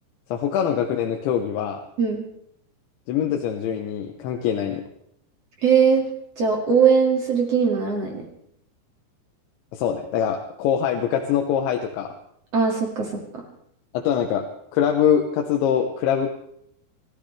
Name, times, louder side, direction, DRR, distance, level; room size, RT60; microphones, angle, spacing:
voice 1, 0.3-1.8 3.1-4.8 9.7-12.1 13.9-14.5 14.7-16.3, left 8 dB, 80° left, 3 dB, 3.4 m, -23 dB
voice 2, 5.6-6.1 6.4-8.3 12.5-13.4, right 6 dB, 45° right, 0 dB, 2.6 m, -20 dB
27.0 x 14.5 x 3.4 m, 0.72 s
omnidirectional pair, 5.2 m